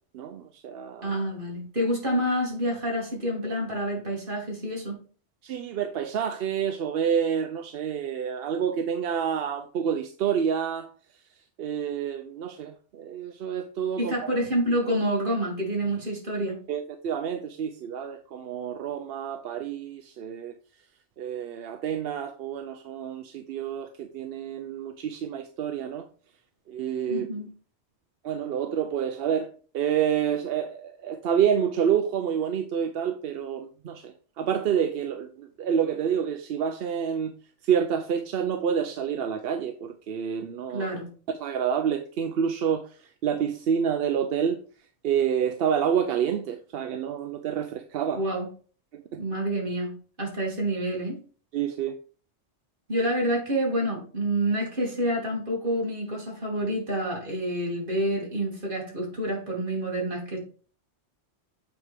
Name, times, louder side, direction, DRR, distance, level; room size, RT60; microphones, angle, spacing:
voice 1, 0.1-1.1 5.4-10.9 11.6-14.3 16.7-20.5 21.2-26.1 26.7-27.3 28.2-37.3 37.6-40.9 41.3-44.6 45.0-48.2 48.9-49.2 51.5-52.0, right 8 dB, 60° right, 0.7 m, -28 dB
voice 2, 1.0-5.0 14.0-16.6 27.1-27.5 40.7-41.1 48.1-48.5 49.2-51.2 52.9-60.4, right 1 dB, 45° right, 2.8 m, -28 dB
7.9 x 4.7 x 3.4 m
omnidirectional pair, 1.2 m